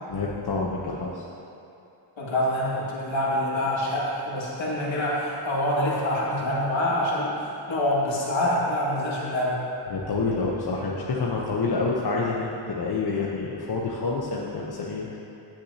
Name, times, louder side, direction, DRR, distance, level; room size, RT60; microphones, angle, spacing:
voice 1, 0.1-1.2 9.9-15.2, left 3 dB, 50° left, -3 dB, 1.0 m, -28 dB
voice 2, 2.2-9.6, left 1 dB, 70° left, -5 dB, 2.2 m, -26 dB
16.5 x 6.2 x 2.9 m, 2.8 s
cardioid pair, 80°, 48 cm